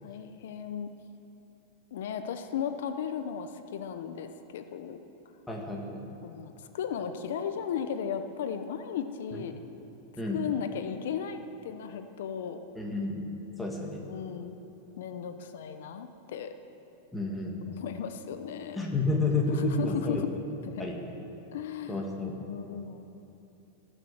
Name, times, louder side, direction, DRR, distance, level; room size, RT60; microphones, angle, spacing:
voice 1, 0.0-0.9 1.9-5.0 6.2-9.6 10.3-12.6 14.1-14.6 15.0-16.5 17.7-18.8 19.5-20.3 20.7-20.8 21.5-22.0 22.5-23.0, left 8 dB, 75° left, 8 dB, 0.8 m, -35 dB
voice 2, 5.5-6.0 9.3-9.4 10.2-10.4 12.7-13.3 13.6-14.0 17.1-17.6 18.7-20.2 20.8-21.0 21.9-22.4, left 2 dB, 5° left, -2 dB, 1.7 m, -30 dB
18.0 x 6.8 x 7.5 m, 3.0 s
supercardioid pair, 160°, 0 cm